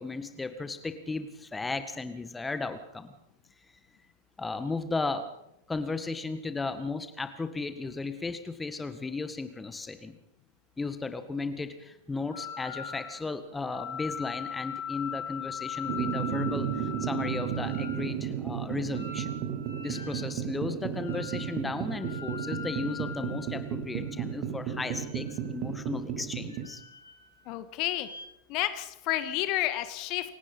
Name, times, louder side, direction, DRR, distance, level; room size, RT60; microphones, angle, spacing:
voice 1, 0.0-3.1 4.4-5.3 5.7-10.1 10.8-19.3 19.8-26.8, left 3 dB, 10° left, 10 dB, 1.8 m, -35 dB
sound 1, 12.3-13.2 13.6-18.0 18.9-20.3 21.0-21.6 21.9-24.1 24.7-25.6 26.5-27.5 27.8-28.2, left 7 dB, 80° left, 6.6 m, -41 dB
sound 2, 15.9-26.7, right 9 dB, 40° right, 2.5 m, -33 dB
voice 2, 27.5-28.1 28.5-30.3, left 14 dB, 40° left, 11 dB, 1.8 m, -30 dB
28.5 x 17.0 x 5.6 m, 0.81 s
figure-of-eight pair, 90°, 0 cm